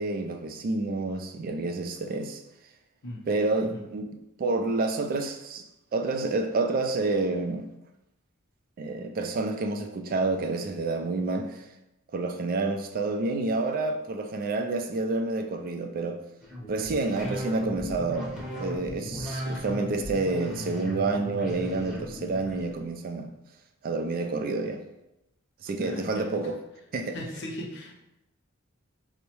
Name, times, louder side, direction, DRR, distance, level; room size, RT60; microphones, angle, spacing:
voice 1, 0.0-2.4 3.3-4.1 4.4-5.6 5.9-7.7 8.8-11.7 12.1-16.2 16.7-23.3 23.8-24.8 25.6-26.6 26.9-27.2, right 3 dB, 45° right, 0.3 m, -29 dB
sound 1, 16.4-22.8, equal, ahead, 0.8 m, -37 dB
voice 2, 25.8-26.3 27.1-27.9, equal, 55° left, 0.6 m, -38 dB
4.5 x 2.0 x 2.9 m
head